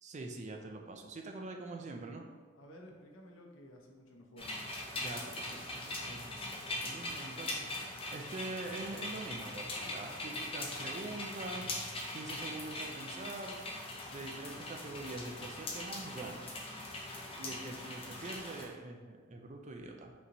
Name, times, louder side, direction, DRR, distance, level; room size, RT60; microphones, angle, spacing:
voice 1, 0.0-2.2 4.9-7.7 8.1-11.7 12.1-13.6 14.1-16.5 17.4-20.1, right 2 dB, 35° right, 3 dB, 0.4 m, -44 dB
voice 2, 2.5-4.7, equal, 70° left, 1 dB, 0.7 m, -54 dB
sound 1, 4.4-18.6, left 1 dB, 30° left, 0.6 m, -41 dB
5.2 x 3.1 x 2.6 m, 1.4 s
head